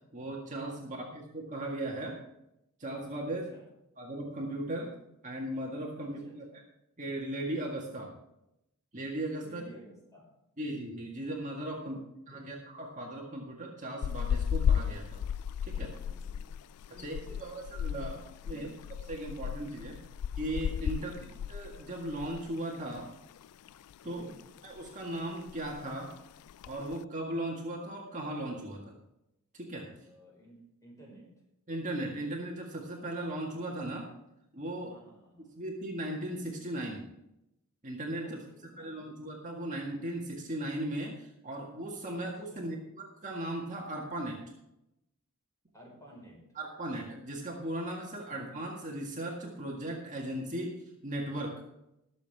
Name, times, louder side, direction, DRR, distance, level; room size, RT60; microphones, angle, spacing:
voice 1, 0.1-2.2 2.8-3.4 4.0-4.9 5.2-6.4 7.0-8.1 8.9-9.6 10.6-12.0 12.3-15.2 15.6-15.9 17.0-18.7 19.1-20.0 20.4-21.1 21.5-23.1 24.0-24.3 24.6-26.1 26.7-29.0 29.5-29.9 31.7-34.1 34.5-34.9 35.6-37.0 37.8-38.4 38.8-44.4 46.6-51.6, right 1 dB, 35° right, -1 dB, 1.9 m, -37 dB
voice 2, 0.8-1.1 3.2-3.7 6.0-6.4 9.4-10.3 11.8-12.0 12.3-12.5 15.9-16.5 16.8-17.6 18.1-18.8 20.9-21.3 24.0-24.4 30.0-31.3 34.9-35.6 38.2-39.2 42.5-42.8 45.7-46.4 48.3-48.4, right 1 dB, 15° left, -3 dB, 5.2 m, -55 dB
sound 1, 14.0-22.5 22.8-23.0 23.4-24.3 24.6-24.9 25.2-25.3 25.5-25.9 26.5-27.0, left 8 dB, 85° left, 0.3 m, -34 dB
21.0 x 7.3 x 3.5 m, 0.84 s
head